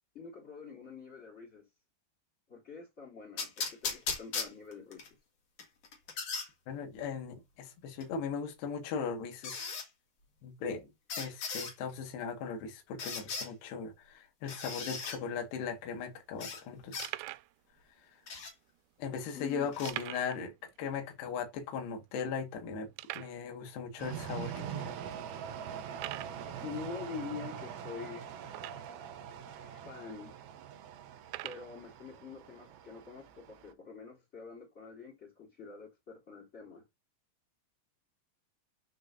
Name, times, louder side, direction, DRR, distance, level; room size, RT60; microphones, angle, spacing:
voice 1, 0.1-1.7 2.5-5.1 19.3-19.7 26.6-28.4 29.6-30.3 31.4-36.8, left 5 dB, 20° left, 2.7 m, -46 dB
sound 1, 3.4-5.1 5.6-6.5 8.0-8.1 9.4-9.9 11.1-11.7 13.0-13.5 14.5-15.2 16.4-16.6 16.9-17.1 18.3-18.5 19.7-19.9, left 5 dB, 40° left, 3.1 m, -37 dB
voice 2, 6.7-9.7 10.4-10.9 11.2-17.1 19.0-20.5 20.8-22.9 23.2-25.0, left 6 dB, 70° left, 3.8 m, -38 dB
sound 2, 15.5-15.6 15.8-16.0 16.5-16.6 17.0-17.5 18.3-18.4 19.9-20.4 20.7-20.8 21.3-21.4 22.0-22.1 23.0-23.4 24.2-24.3 24.9-25.0 25.9-26.4 28.5-29.1 29.8-29.9 31.2-31.7, right 19 dB, 85° right, 2.8 m, -42 dB
sound 3, 24.0-33.7, right 8 dB, 70° right, 2.8 m, -43 dB
9.9 x 4.7 x 2.7 m
omnidirectional pair, 5.0 m